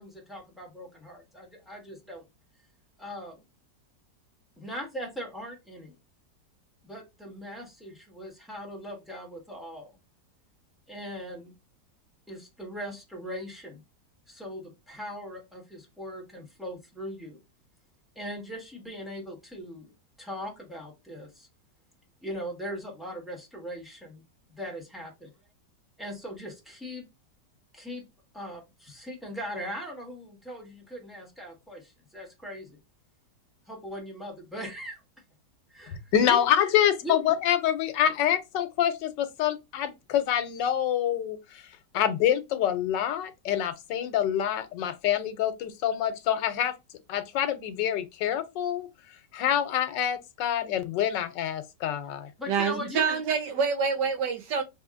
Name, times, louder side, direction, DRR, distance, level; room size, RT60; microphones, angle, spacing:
voice 1, 0.0-2.2 3.0-3.4 4.6-5.9 6.8-10.0 10.9-11.5 12.3-13.8 14.3-17.4 18.1-21.5 22.2-24.2 24.5-25.3 26.0-27.1 27.7-28.0 28.3-32.8 33.7-35.0 35.7-36.4 37.0-37.2 52.4-53.2, equal, ahead, 1.2 m, -40 dB
voice 2, 36.1-41.6 41.9-46.7 47.1-48.9 49.3-52.3, left 10 dB, 90° left, 1.3 m, -26 dB
voice 3, 52.5-54.6, right 6 dB, 75° right, 1.5 m, -26 dB
6.4 x 2.7 x 2.5 m
omnidirectional pair, 1.9 m